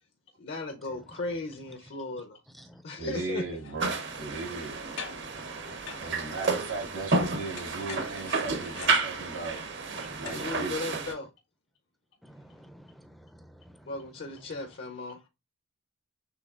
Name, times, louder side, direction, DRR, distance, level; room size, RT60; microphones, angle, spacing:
voice 1, 0.4-2.4 2.8-3.4 10.2-11.3 13.9-15.2, left 2 dB, 60° left, 0.7 m, -36 dB
voice 2, 3.0-4.8 6.0-9.6 10.2-10.8, right 3 dB, 85° right, 2.5 m, -37 dB
sound 1, 3.1-3.2 3.5-4.7 5.0-5.4 5.9-7.2 7.5-10.5 10.9-11.0, left 6 dB, 80° left, 1.6 m, -45 dB
sound 2, 3.8-11.1, right 3 dB, 60° right, 0.8 m, -31 dB
voice 3, 5.2-6.0 10.0-10.2 12.2-13.9, equal, ahead, 0.4 m, -52 dB
6.1 x 3.2 x 2.4 m
head